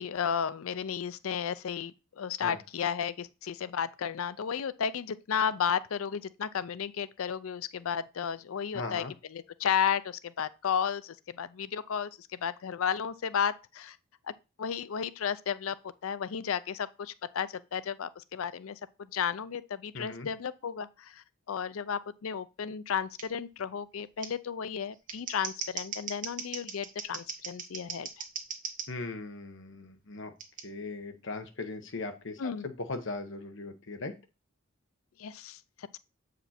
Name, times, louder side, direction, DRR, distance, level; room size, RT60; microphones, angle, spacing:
voice 1, 0.0-9.0 9.3-14.0 14.6-15.8 16.0-28.2 32.4-32.6 35.2-36.0, left 7 dB, 90° left, 0.5 m, -33 dB
voice 2, 8.7-9.1 19.9-20.3 28.9-30.3 30.6-34.1, left 3 dB, 65° left, 1.1 m, -38 dB
Scissors, 23.2-23.3 24.2-24.3 24.9-28.9 30.4-30.6, right 6 dB, 40° right, 1.5 m, -38 dB
7.8 x 5.1 x 4.2 m
head